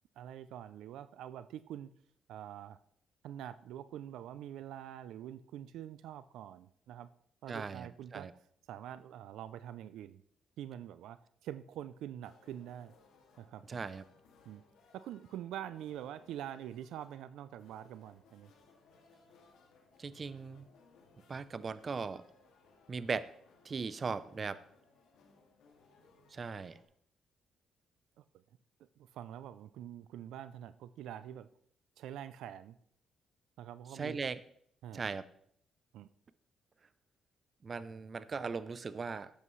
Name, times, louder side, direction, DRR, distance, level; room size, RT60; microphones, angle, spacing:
voice 1, 0.2-1.9 2.3-2.8 3.2-7.1 7.4-8.3 8.7-10.2 10.6-12.9 13.4-13.9 14.5-14.6 14.9-18.5 28.2-28.4 29.0-31.5 32.0-32.8 33.6-34.2 34.8-35.0 35.9-36.1, right 11 dB, 85° right, 14 dB, 0.4 m, -45 dB
voice 2, 7.5-8.3 13.7-14.0 20.0-20.7 21.3-22.2 22.9-23.3 23.6-24.6 26.3-26.8 33.9-34.4 34.9-35.2 37.6-39.3, right 5 dB, 40° right, 15 dB, 0.6 m, -38 dB
sound 1, 12.2-26.8, left 4 dB, 80° left, 2.2 m, -65 dB
12.5 x 8.3 x 3.2 m, 0.67 s
cardioid pair, 90°, 0 cm